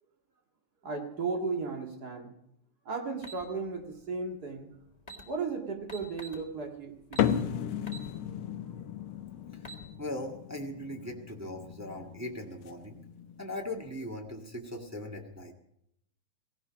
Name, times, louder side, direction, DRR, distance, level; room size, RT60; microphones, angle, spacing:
voice 1, 0.8-2.3 2.8-4.7 5.2-7.4, right 4 dB, 35° right, 3 dB, 2.2 m, -35 dB
sound 1, 3.2-3.4 4.6-4.7 5.0-5.2 5.9-6.4 7.1-7.3 7.9-8.1 8.5-8.6 9.4-9.8, right 2 dB, 15° left, 1.4 m, -44 dB
sound 2, 7.2-13.9, left 9 dB, 80° left, 1.1 m, -35 dB
voice 2, 10.0-13.0 13.4-15.5, left 1 dB, 10° right, 0 dB, 0.7 m, -39 dB
17.0 x 16.5 x 5.2 m, 0.77 s
omnidirectional pair, 3.4 m